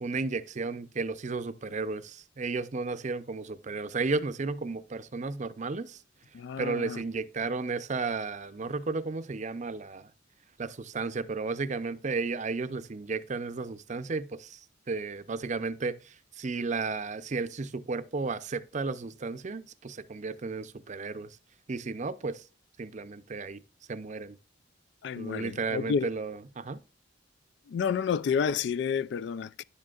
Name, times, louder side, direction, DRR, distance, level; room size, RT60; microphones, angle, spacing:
voice 1, 0.0-6.0 6.6-10.1 10.6-14.6 14.9-21.4 21.7-22.4 22.8-23.6 23.9-24.4 25.2-26.8, right 4 dB, 40° right, 0.5 m, -33 dB
voice 2, 6.3-7.0 25.0-26.1 27.7-29.6, left 6 dB, 60° left, 0.3 m, -30 dB
10.5 x 7.5 x 2.4 m
head